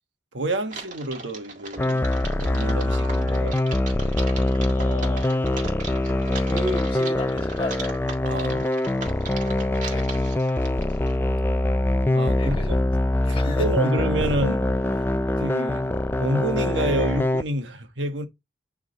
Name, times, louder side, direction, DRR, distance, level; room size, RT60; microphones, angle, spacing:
voice 1, 0.3-3.6 8.2-8.7 12.1-12.6 13.2-14.7 15.4-15.8 16.2-18.3, right 1 dB, 80° right, 1.4 m, -28 dB
Typing, 0.7-11.2, right 3 dB, 40° right, 1.8 m, -39 dB
sound 1, 1.8-17.4, left 1 dB, 10° left, 0.4 m, -23 dB
voice 2, 4.7-5.3 6.4-7.8 9.9-10.1 12.4-12.8 13.2-13.7, left 1 dB, 30° left, 1.8 m, -33 dB
11.0 x 3.7 x 3.9 m
head